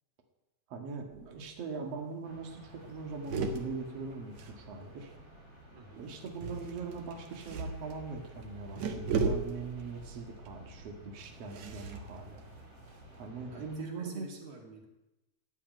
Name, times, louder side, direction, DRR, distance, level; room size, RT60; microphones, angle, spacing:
voice 1, 0.7-5.1 6.0-12.5 13.2-14.3, right 4 dB, 60° right, 2 dB, 3.0 m, -41 dB
sound 1, 1.1-1.6 1.9-2.0 2.2-2.5 2.8-5.2 6.3-13.2, right 4 dB, 75° right, 2.8 m, -38 dB
sound 2, 2.2-13.8, equal, 40° right, 4.3 m, -54 dB
voice 2, 5.7-6.0 13.5-14.9, right 5 dB, 90° right, 1 dB, 4.1 m, -47 dB
15.0 x 10.0 x 9.4 m, 0.99 s
omnidirectional pair, 3.3 m